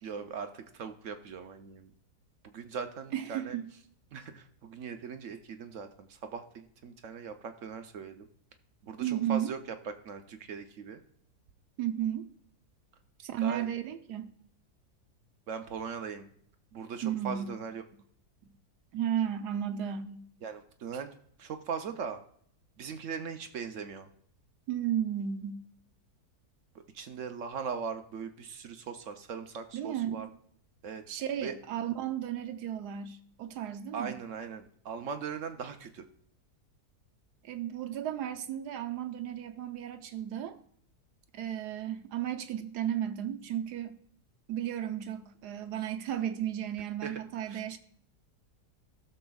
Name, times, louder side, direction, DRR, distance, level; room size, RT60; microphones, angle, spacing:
voice 1, 0.0-1.9 2.4-3.6 4.1-8.3 8.8-9.6 9.8-11.0 13.4-13.7 15.5-16.3 16.7-17.8 20.4-21.1 21.4-22.2 22.8-24.1 26.7-30.3 30.8-31.0 31.4-31.5 33.9-36.0 47.0-47.2 47.5-47.6, right 6 dB, 60° right, 0.9 m, -39 dB
voice 2, 3.1-3.6 9.0-9.5 11.8-12.3 13.2-14.3 17.0-17.6 18.4-18.5 18.9-20.2 24.7-25.6 29.7-30.2 31.1-34.1 37.4-40.6 41.3-44.0 44.5-47.8, right 10 dB, 80° right, 1.3 m, -34 dB
18.5 x 6.6 x 2.3 m
omnidirectional pair, 1.7 m